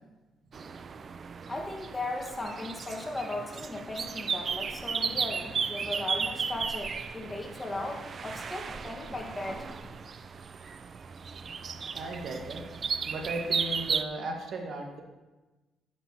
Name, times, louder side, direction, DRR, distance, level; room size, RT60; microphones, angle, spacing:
sound 1, 0.5-14.0, right 6 dB, 45° right, 0.4 m, -35 dB
voice 1, 1.5-10.0, left 2 dB, 15° left, 2 dB, 1.4 m, -37 dB
voice 2, 11.9-12.6 13.0-15.0, right 2 dB, 65° right, 2 dB, 1.5 m, -36 dB
10.5 x 9.9 x 2.8 m, 1.1 s
cardioid pair, 90°, 0 cm